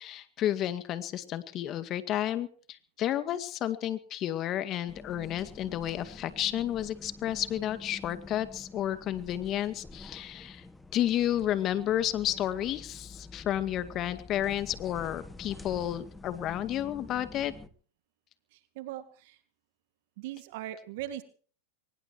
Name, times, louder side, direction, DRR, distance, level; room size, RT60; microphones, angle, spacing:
voice 1, 0.0-10.6 10.9-17.5, left 12 dB, 35° left, 12 dB, 2.0 m, -31 dB
sound 1, 4.9-17.7, left 3 dB, 10° left, 1.9 m, -48 dB
voice 2, 18.5-19.4 20.2-21.2, right 13 dB, 60° right, 10 dB, 2.1 m, -40 dB
23.5 x 19.5 x 3.1 m, 0.43 s
hypercardioid pair, 115°, 0 cm